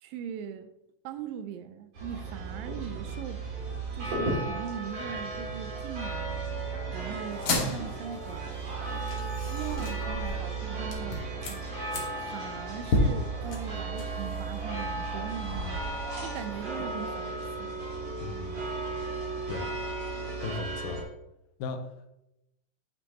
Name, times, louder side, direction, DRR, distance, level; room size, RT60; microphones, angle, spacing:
voice 1, 0.0-0.7 1.0-3.4 3.9-6.5 6.9-8.6 9.4-11.7 12.3-16.0 16.2-17.7, right 9 dB, 85° right, 2.2 m, -40 dB
sound 1, 1.9-21.0, right 3 dB, 50° right, 3.5 m, -35 dB
sound 2, 7.3-16.9, left 2 dB, 55° left, 1.8 m, -34 dB
voice 2, 18.2-18.7 19.5-19.7 20.4-21.0 21.6-21.9, left 4 dB, 85° left, 2.5 m, -36 dB
9.9 x 5.8 x 2.8 m
omnidirectional pair, 4.0 m